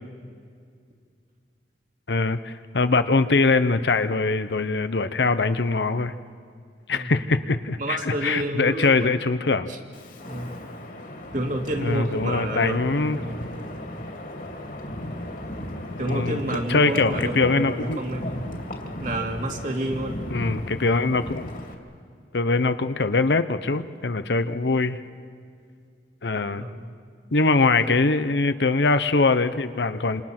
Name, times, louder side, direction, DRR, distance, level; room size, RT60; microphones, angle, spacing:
voice 1, 2.1-6.1 6.9-9.7 11.8-13.2 16.1-16.4 16.7-18.0 20.3-21.5 22.3-25.0 26.2-26.7 27.3-30.2, left 3 dB, 75° left, 11 dB, 0.9 m, -22 dB
voice 2, 7.8-9.1 9.7-9.8 10.3-10.6 11.3-13.5 16.0-18.4 19.0-20.6 26.6-26.9 27.9-28.0, right 1 dB, 45° right, 1 dB, 2.5 m, -30 dB
Wind, 9.9-21.7, left 1 dB, 50° left, 2.8 m, -36 dB
27.5 x 27.0 x 6.0 m, 2.2 s
head